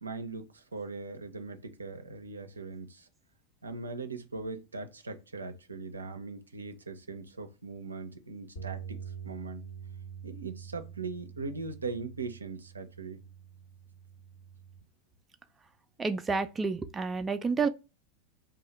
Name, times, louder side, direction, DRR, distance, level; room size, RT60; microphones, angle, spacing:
voice 1, 0.0-3.1 3.6-9.7 10.2-13.2, right 4 dB, 85° right, 0.4 m, -40 dB
sound 1, 8.6-14.8, right 7 dB, 65° left, 1.1 m, -45 dB
voice 2, 16.0-17.7, right 4 dB, 15° right, 0.3 m, -29 dB
2.7 x 2.2 x 3.2 m
figure-of-eight pair, 90°, 0 cm